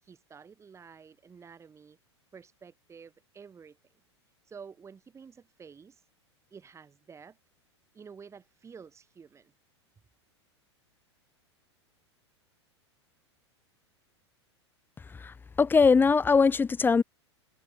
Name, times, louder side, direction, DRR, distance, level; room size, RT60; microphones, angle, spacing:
voice 1, 0.0-2.0 2.3-3.9 4.4-6.1 6.5-7.4 7.9-9.5, right 6 dB, 20° right, 4.5 m, -50 dB
voice 2, 15.2-17.0, left 5 dB, 15° left, 0.9 m, -22 dB
figure-of-eight pair, 90°, 15 cm